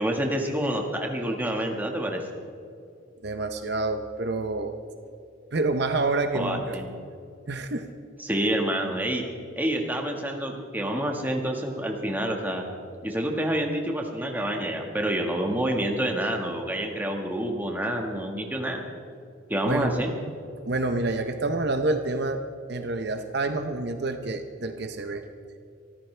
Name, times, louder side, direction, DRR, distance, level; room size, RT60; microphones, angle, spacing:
voice 1, 0.0-2.2 6.3-6.9 8.2-9.2 9.6-12.6 13.0-18.8 19.5-20.1, right 1 dB, 10° right, 1 dB, 1.5 m, -28 dB
voice 2, 3.2-4.7 5.5-6.8 7.5-7.8 19.7-19.9 20.7-22.4 22.7-25.2, right 2 dB, 55° right, 7 dB, 0.7 m, -28 dB
24.5 x 14.0 x 3.3 m, 2.5 s
head